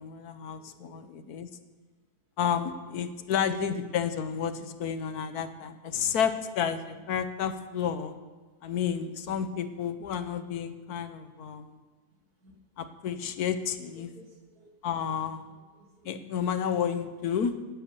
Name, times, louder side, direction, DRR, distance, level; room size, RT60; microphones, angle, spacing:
voice 1, 0.0-1.5 2.4-8.1 8.6-11.8 12.8-14.1 14.8-15.5 16.0-17.6, left 7 dB, 80° left, 10 dB, 1.4 m, -31 dB
voice 2, 0.6-1.4 2.9-3.3 6.1-6.5 6.9-7.0 7.7-7.8 12.4-12.5 13.9-15.0 15.5-16.5, right 1 dB, 80° right, 2 dB, 2.5 m, -57 dB
16.0 x 8.5 x 6.9 m, 1.3 s
omnidirectional pair, 1.6 m